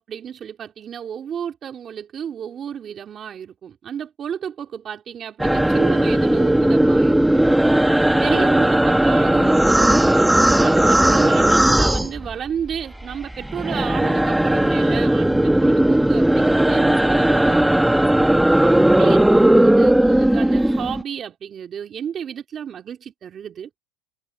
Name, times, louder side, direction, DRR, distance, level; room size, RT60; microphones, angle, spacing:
voice 1, 0.0-7.5 8.2-17.6 18.6-23.7, right 8 dB, 30° right, 3.2 m, -32 dB
sound 1, 5.4-12.7 13.0-21.0, right 1 dB, 5° right, 1.4 m, -17 dB
supercardioid pair, 125°, 0 cm